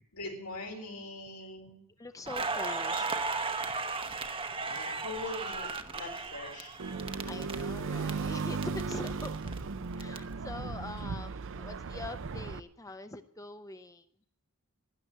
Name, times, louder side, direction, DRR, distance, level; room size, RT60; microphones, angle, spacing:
voice 1, 0.0-1.8 4.5-6.9, left 2 dB, 90° left, 1 dB, 4.2 m, -42 dB
voice 2, 2.0-3.2 4.7-4.8 7.2-9.4 10.0-14.0, left 2 dB, 15° left, 9 dB, 0.6 m, -43 dB
Crackle, 2.3-8.1 8.4-10.2, right 4 dB, 25° right, 0.9 m, -35 dB
sound 1, 6.8-12.6, right 4 dB, 60° right, 0.6 m, -36 dB
12.5 x 10.5 x 9.0 m, 0.71 s
head